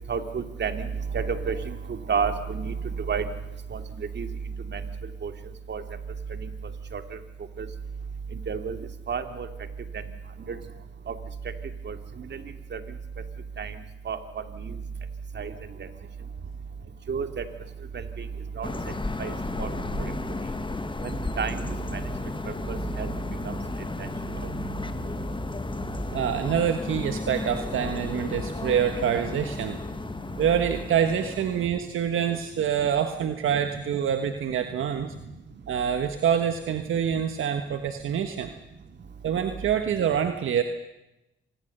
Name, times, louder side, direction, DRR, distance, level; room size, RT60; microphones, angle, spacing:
voice 1, 0.1-3.2 3.7-4.3 4.6-4.8 5.2-5.3 5.7-5.8 6.3-6.5 6.9-7.2 7.6-7.7 8.3-8.8 9.1-9.5 9.9-10.0 10.5-10.6 11.1-11.2 11.8-12.4 12.7-13.0 13.6-13.8 14.0-14.8 15.3-15.5 15.8-15.9 17.1-17.5 17.9-18.3 18.6-18.7 19.2-19.7 20.0-20.1 21.0-21.7 21.9-22.0 22.4-23.1 23.4-23.5 24.0-24.1 28.2-28.3 30.9-31.0 33.7-33.9 34.6-34.8 35.1-35.2, right 6 dB, 60° right, 7 dB, 2.5 m, -31 dB
sound 1, 18.6-31.7, left 3 dB, 25° left, 1.5 m, -33 dB
voice 2, 26.1-29.8 30.4-35.1 35.7-38.5 39.2-40.6, right 8 dB, 80° right, 7 dB, 1.4 m, -26 dB
26.5 x 20.5 x 6.8 m, 0.94 s
cardioid pair, 60°, 21 cm